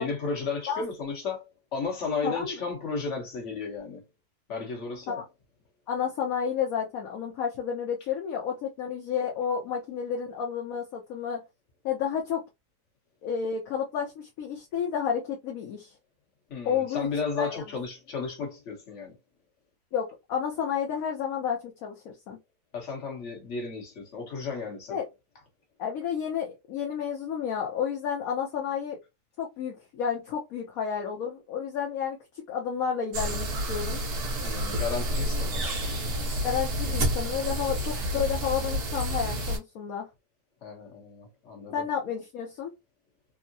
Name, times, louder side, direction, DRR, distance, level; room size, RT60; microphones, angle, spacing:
voice 1, 0.0-4.0 4.5-5.2 16.5-19.2 22.7-25.0 34.4-36.4 40.6-41.9, left 4 dB, 50° left, 1.4 m, -34 dB
voice 2, 2.2-2.6 5.1-5.2 5.9-11.4 11.8-12.4 13.2-15.9 16.6-17.1 17.4-17.6 19.9-22.4 24.9-25.1 25.8-29.0 29.4-32.2 32.5-34.0 36.4-40.0 41.7-42.7, left 7 dB, 65° left, 1.1 m, -31 dB
sound 1, 33.1-39.6, equal, 75° right, 1.5 m, -29 dB
3.6 x 2.0 x 2.6 m
omnidirectional pair, 1.7 m